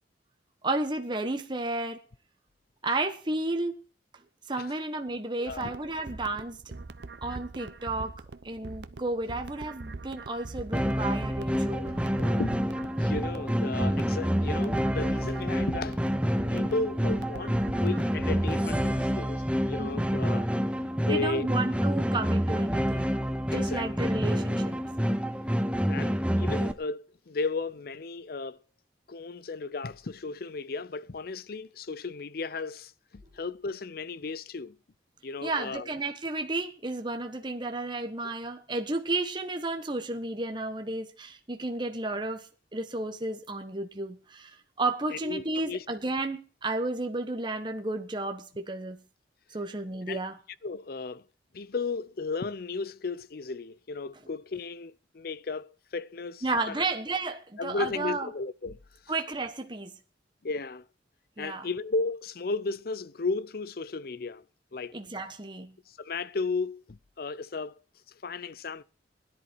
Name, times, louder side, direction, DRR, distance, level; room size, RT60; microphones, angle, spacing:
voice 1, 0.6-2.0 2.8-3.8 4.5-6.6 7.2-8.1 8.4-12.4 19.8-20.2 21.0-23.1 23.5-24.8 35.4-49.0 49.5-50.4 56.4-58.3 59.1-60.0 61.4-61.7 64.9-65.7, right 2 dB, 25° right, 1.2 m, -32 dB
voice 2, 5.4-5.7 11.7-11.9 12.2-12.6 13.0-16.0 16.5-20.5 21.0-21.5 23.5-24.1 25.8-28.6 29.1-34.8 35.2-35.9 38.2-38.3 45.1-45.8 50.1-50.2 50.6-51.2 51.5-56.9 57.6-58.8 60.4-60.9 61.4-64.4 64.7-65.0 65.9-67.8 68.2-68.8, left 3 dB, 55° left, 0.6 m, -34 dB
sound 1, 5.5-19.1, right 3 dB, 70° right, 0.8 m, -43 dB
sound 2, 10.7-26.7, equal, 5° right, 0.8 m, -28 dB
20.5 x 10.5 x 4.5 m
head